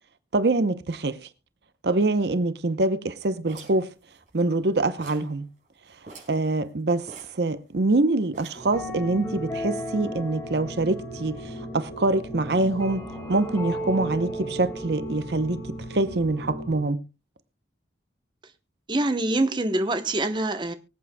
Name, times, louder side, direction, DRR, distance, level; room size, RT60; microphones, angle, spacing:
voice 1, 0.3-1.3 1.8-3.9 4.3-5.5 6.3-13.0 13.3-15.6 15.9-17.0, right 2 dB, 70° right, 0.7 m, -25 dB
sound 1, 3.5-4.7 5.0-5.4 5.7-5.8 6.0-6.4 7.1-7.9 8.3-8.8, right 3 dB, 45° right, 5.1 m, -46 dB
sound 2, 8.5-16.8, equal, 15° left, 4.3 m, -35 dB
voice 2, 18.9-20.7, right 2 dB, 25° right, 0.8 m, -25 dB
24.0 x 8.5 x 2.2 m
head